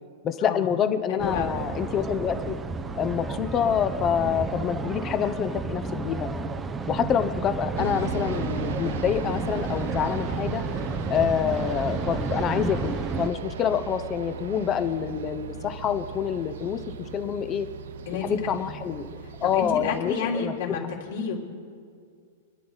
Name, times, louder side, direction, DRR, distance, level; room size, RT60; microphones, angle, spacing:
voice 1, 0.2-2.6 2.9-6.3 6.9-10.6 11.1-17.7 18.2-19.1 19.4-20.8, left 8 dB, 25° left, 10 dB, 0.9 m, -27 dB
voice 2, 1.1-1.5 18.1-18.3 19.4-20.8 21.1-21.4, left 6 dB, 65° left, -1 dB, 3.6 m, -30 dB
sound 1, 1.2-13.3, right 3 dB, 15° right, 0.8 m, -32 dB
sound 2, 7.8-20.0, right 6 dB, 80° right, 0.9 m, -37 dB
28.0 x 10.5 x 4.1 m, 2.2 s
hypercardioid pair, 150°, 0 cm